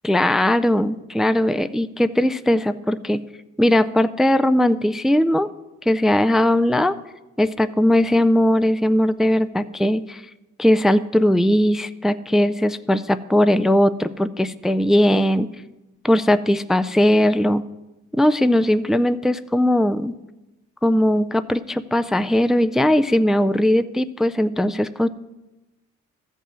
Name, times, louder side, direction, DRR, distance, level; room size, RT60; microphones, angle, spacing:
voice 1, 0.0-3.2 3.6-5.5 5.9-7.0 7.4-10.2 10.6-15.5 16.0-17.6 18.1-20.1 20.8-25.1, left 1 dB, ahead, 13 dB, 0.3 m, -19 dB
13.5 x 5.5 x 7.5 m, 1.0 s
cardioid pair, 90°, 30 cm